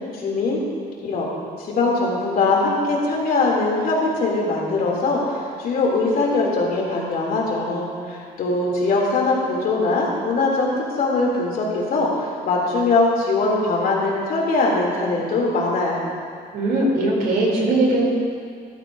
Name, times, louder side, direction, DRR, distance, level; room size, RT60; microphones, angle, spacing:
voice 1, 0.1-0.6 1.0-1.3 1.6-16.0, left 3 dB, 60° left, -3 dB, 2.9 m, -21 dB
voice 2, 16.5-18.1, right 2 dB, 65° right, -3 dB, 3.4 m, -20 dB
13.5 x 13.0 x 2.7 m, 2.1 s
cardioid pair, 110°, 17 cm